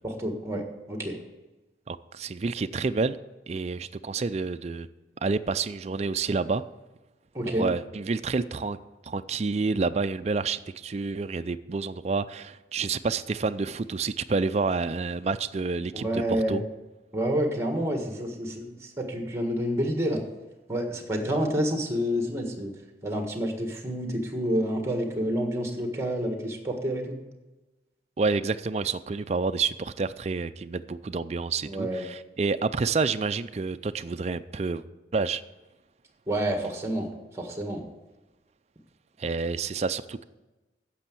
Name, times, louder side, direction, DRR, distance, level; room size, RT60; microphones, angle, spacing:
voice 1, 0.0-0.6 0.9-1.2 7.3-7.7 15.9-16.6 17.1-20.2 20.7-22.7 23.0-27.2 31.6-32.0 36.3-37.1 37.3-37.8, equal, 15° right, 4 dB, 1.5 m, -28 dB
voice 2, 1.9-3.2 3.5-4.9 5.2-6.6 7.4-8.8 9.0-16.6 28.2-34.8 35.1-35.4 39.2-40.2, right 4 dB, 35° right, 11 dB, 0.4 m, -29 dB
9.9 x 7.0 x 7.6 m, 1.1 s
head